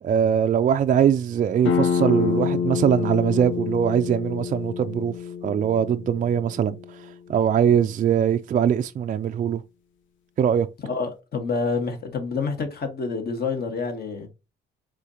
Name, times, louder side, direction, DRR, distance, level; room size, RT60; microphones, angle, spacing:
voice 1, 0.0-5.2 5.4-9.6 10.4-10.7, right 8 dB, 40° right, 0.4 m, -22 dB
sound 1, 1.6-7.1, left 7 dB, 75° left, 0.8 m, -27 dB
voice 2, 10.8-14.3, left 4 dB, 50° left, 1.5 m, -28 dB
4.8 x 3.8 x 2.8 m
cardioid pair, 90°, 20 cm